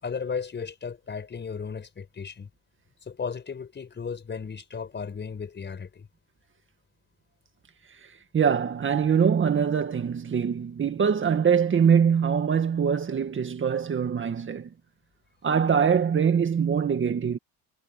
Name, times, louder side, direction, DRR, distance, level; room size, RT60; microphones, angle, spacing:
voice 1, 0.0-2.5 3.0-6.1, left 6 dB, 30° left, 5.3 m, -35 dB
voice 2, 8.3-14.7 15.4-17.4, right 7 dB, 35° right, 1.9 m, -23 dB
cardioid pair, 110°, 36 cm